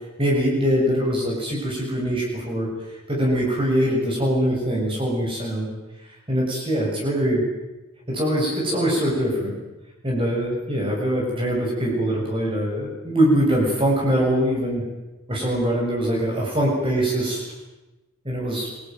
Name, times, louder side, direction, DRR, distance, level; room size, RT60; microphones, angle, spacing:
voice 1, 0.2-2.7 3.1-5.7 6.3-7.4 8.1-9.5 10.0-14.8 15.3-17.4 18.2-18.7, equal, 25° right, -3 dB, 7.3 m, -23 dB
26.5 x 20.0 x 9.5 m, 1.1 s
head